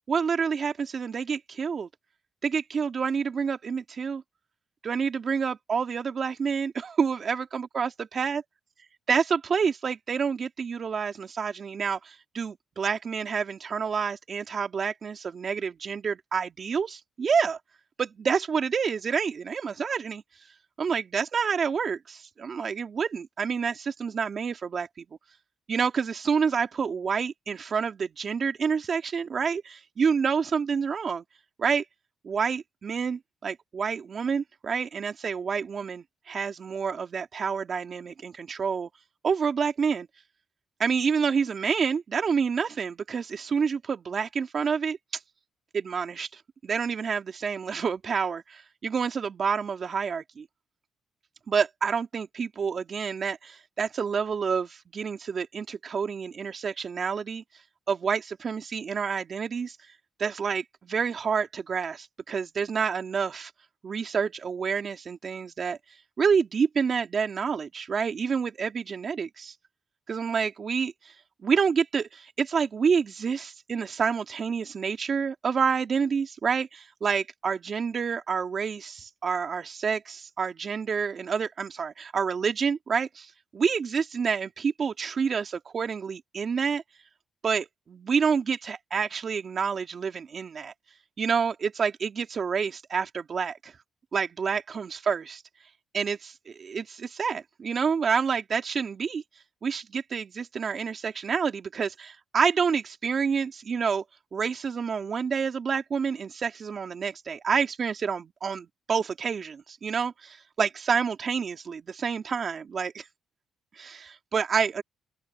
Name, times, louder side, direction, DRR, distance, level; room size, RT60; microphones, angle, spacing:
voice 1, 0.1-1.9 2.4-4.2 4.8-8.4 9.1-17.6 18.0-20.2 20.8-24.9 25.7-31.2 31.6-31.8 32.2-38.9 39.2-40.1 40.8-45.0 45.7-50.5 51.5-57.4 57.9-59.8 60.2-63.5 63.8-65.8 66.2-69.5 70.1-70.9 71.4-86.8 87.4-90.7 91.2-93.7 94.1-95.4 95.9-99.2 99.6-104.0 104.3-113.0 113.8-114.8, right 6 dB, 45° right, 2.5 m, -28 dB
open air
cardioid pair, 90°, 0 cm